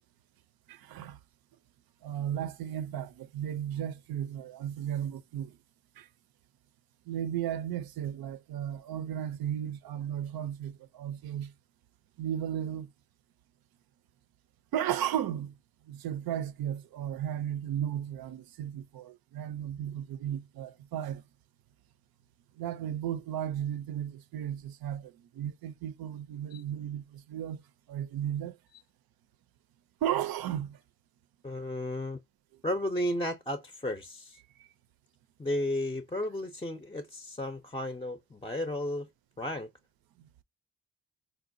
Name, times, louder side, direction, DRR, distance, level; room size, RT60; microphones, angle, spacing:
voice 1, 0.7-1.2 2.0-5.5 6.0-6.1 7.1-11.5 12.2-12.9 14.7-15.5 15.9-21.2 22.6-27.6 27.9-28.6 30.0-30.8, right 10 dB, 75° right, 0.5 m, -35 dB
voice 2, 31.4-32.2 32.6-34.4 35.4-39.1 39.4-39.7, left 1 dB, 15° left, 0.5 m, -33 dB
3.9 x 2.2 x 2.5 m
cardioid pair, 50°, 36 cm